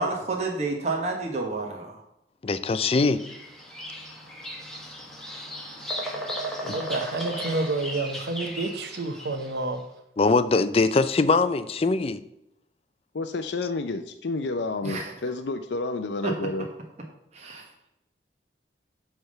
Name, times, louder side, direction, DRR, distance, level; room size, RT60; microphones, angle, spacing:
voice 1, 0.0-1.9 14.8-15.1 16.2-16.3 17.3-17.7, right 3 dB, 40° right, 1.1 m, -29 dB
voice 2, 2.4-3.2 6.7-6.8 10.2-12.2, left 3 dB, 35° left, 0.4 m, -22 dB
Bird vocalization bird call bird song, 2.9-9.6, equal, 5° left, 1.3 m, -36 dB
voice 3, 6.6-9.8, right 2 dB, 70° right, 1.0 m, -29 dB
voice 4, 13.1-16.7, left 3 dB, 85° left, 0.5 m, -30 dB
8.9 x 3.5 x 6.5 m
head